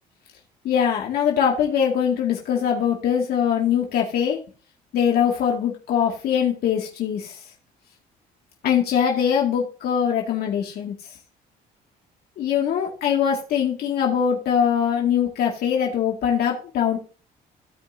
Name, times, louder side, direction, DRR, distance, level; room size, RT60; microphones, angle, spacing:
voice 1, 0.6-4.4 4.9-7.3 8.6-10.9 12.4-17.0, left 8 dB, 65° left, -1 dB, 2.0 m, -22 dB
16.0 x 5.5 x 2.6 m, 0.36 s
cardioid pair, 110°, 17 cm